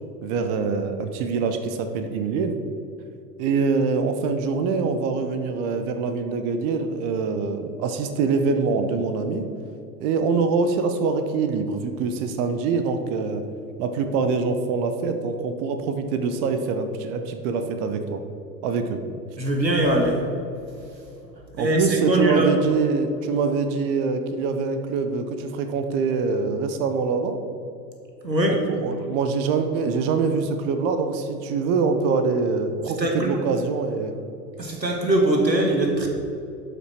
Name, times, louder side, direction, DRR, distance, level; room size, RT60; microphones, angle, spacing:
voice 1, 0.2-2.5 3.4-9.5 10.0-13.4 13.8-18.2 18.6-19.0 21.6-27.4 28.5-34.1, right 4 dB, 30° right, 7 dB, 0.7 m, -24 dB
voice 2, 19.4-20.3 21.6-22.7 28.2-28.6 33.0-33.4 34.6-36.1, right 1 dB, 90° right, 2 dB, 1.5 m, -21 dB
12.0 x 5.6 x 4.4 m, 2.7 s
figure-of-eight pair, 95°, 50 cm